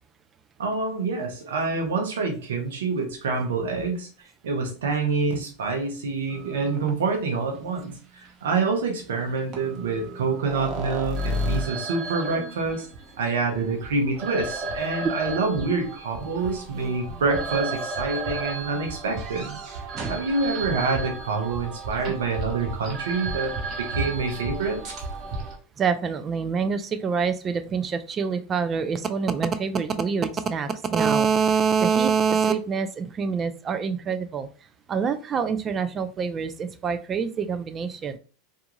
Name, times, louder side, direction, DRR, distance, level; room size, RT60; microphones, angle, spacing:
voice 1, 0.6-4.1 4.4-12.9 13.2-19.6 20.1-24.8, right 4 dB, 85° right, 2 dB, 0.8 m, -27 dB
sound 1, 6.3-6.9 8.2-8.3 9.5-25.5, right 2 dB, 45° right, 0.9 m, -33 dB
voice 2, 25.8-34.5 34.9-38.2, right 6 dB, 30° right, 11 dB, 0.3 m, -25 dB
2.6 x 2.3 x 2.9 m, 0.38 s
hypercardioid pair, 105°, 0 cm